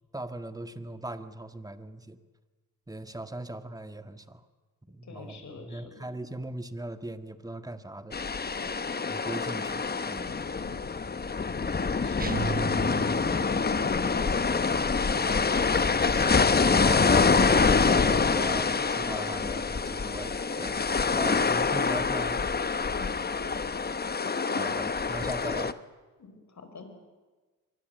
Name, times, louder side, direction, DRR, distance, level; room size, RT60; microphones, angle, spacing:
voice 1, 0.1-2.2 2.9-4.4 4.9-8.2 9.1-10.4 13.3-13.5 16.1-20.8 21.1-22.4 24.6-25.7, right 1 dB, 10° right, 8 dB, 1.7 m, -39 dB
voice 2, 5.0-6.1 8.6-8.7 10.6-10.7 11.7-12.4 12.9-14.9 21.0-21.8 22.9-23.5 24.2-24.7 26.2-26.9, left 4 dB, 55° left, 6 dB, 5.3 m, -44 dB
sound 1, 8.1-25.7, left 4 dB, 30° left, 1.0 m, -26 dB
sound 2, 12.2-13.6, right 4 dB, 25° right, 1.1 m, -34 dB
24.5 x 20.0 x 8.1 m, 1.3 s
cardioid pair, 75°, 34 cm